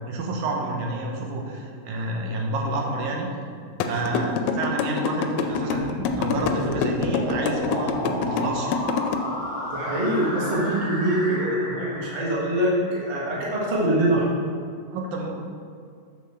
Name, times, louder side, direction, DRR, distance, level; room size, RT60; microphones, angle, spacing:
voice 1, 0.1-3.3 3.8-8.8 14.9-15.3, right 2 dB, 80° right, 0 dB, 2.4 m, -29 dB
sound 1, 3.8-9.1, left 7 dB, 80° left, 1.6 m, -25 dB
sound 2, 5.5-13.5, left 1 dB, 15° left, 0.9 m, -33 dB
voice 2, 9.7-14.3, right 1 dB, 25° right, -6 dB, 1.0 m, -24 dB
7.1 x 3.9 x 6.5 m, 2.3 s
omnidirectional pair, 3.4 m